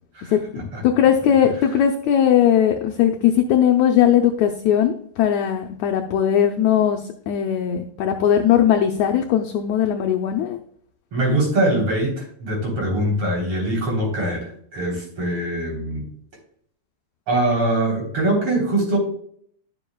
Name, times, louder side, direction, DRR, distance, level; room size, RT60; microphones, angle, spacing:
voice 1, 0.3-7.0 7.3-10.6, left 9 dB, 80° left, 4 dB, 1.6 m, -19 dB
voice 2, 11.1-16.0 17.3-19.0, right 1 dB, 40° right, -1 dB, 4.2 m, -22 dB
12.0 x 7.0 x 2.3 m, 0.62 s
omnidirectional pair, 3.9 m